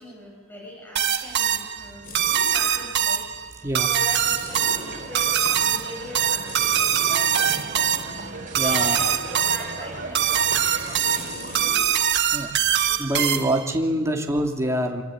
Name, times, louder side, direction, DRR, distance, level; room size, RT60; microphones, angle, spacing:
voice 1, 0.0-3.2 3.8-6.9 7.2-7.6 8.5-10.6 10.9-11.9 12.8-13.5 13.9-14.2, equal, 10° left, -2 dB, 7.9 m, -41 dB
sound 1, 1.0-13.7, right 9 dB, 55° right, 1.4 m, -23 dB
sound 2, 1.1-13.8, left 2 dB, 45° left, 5.3 m, -43 dB
sound 3, 4.5-11.7, right 2 dB, 40° right, 4.7 m, -37 dB
voice 2, 8.5-9.0 10.6-10.9 12.3-12.5 13.0-15.0, right 1 dB, 15° right, 1 dB, 3.2 m, -25 dB
27.5 x 23.5 x 9.4 m, 1.4 s
head